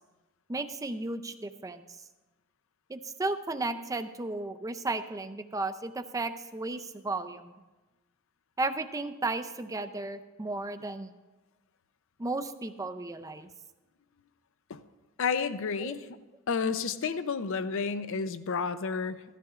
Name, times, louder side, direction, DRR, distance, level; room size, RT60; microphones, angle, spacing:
voice 1, 0.5-1.9 2.9-7.5 8.6-11.1 12.2-13.5 15.8-15.9, right 2 dB, 15° right, 10 dB, 0.4 m, -34 dB
voice 2, 15.2-16.1 16.5-19.2, left 5 dB, 65° left, 12 dB, 0.5 m, -31 dB
16.0 x 13.5 x 2.4 m, 1.2 s
head